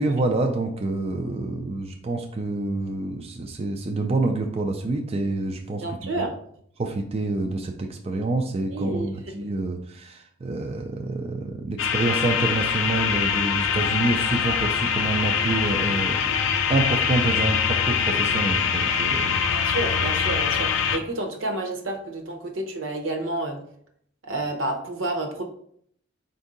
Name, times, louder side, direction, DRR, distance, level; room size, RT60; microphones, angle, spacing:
voice 1, 0.0-5.8 6.2-6.3 6.8-16.2 16.7-19.4, right 2 dB, 30° right, 3 dB, 0.3 m, -27 dB
voice 2, 5.8-6.3 8.7-9.1 19.5-23.6 24.2-25.4, right 2 dB, 80° right, 2 dB, 0.8 m, -30 dB
sound 1, 11.8-21.0, left 6 dB, 75° left, 0.4 m, -23 dB
4.5 x 2.6 x 3.7 m, 0.65 s
head